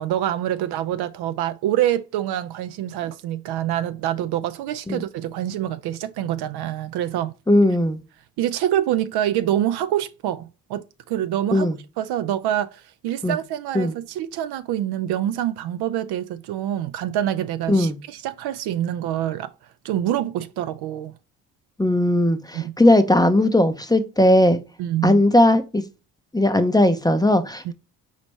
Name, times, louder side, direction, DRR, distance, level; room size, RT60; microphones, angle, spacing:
voice 1, 0.0-7.3 8.4-11.7 12.0-19.5 19.8-21.1 22.5-22.7 24.8-25.2 27.6-27.7, right 11 dB, 55° right, 0.5 m, -26 dB
voice 2, 7.5-8.0 11.5-11.7 13.2-13.4 13.7-13.9 17.7-18.0 21.8-24.6 25.0-25.8 26.3-27.7, left 1 dB, 10° left, 0.6 m, -18 dB
5.0 x 3.2 x 3.3 m
hypercardioid pair, 45°, 47 cm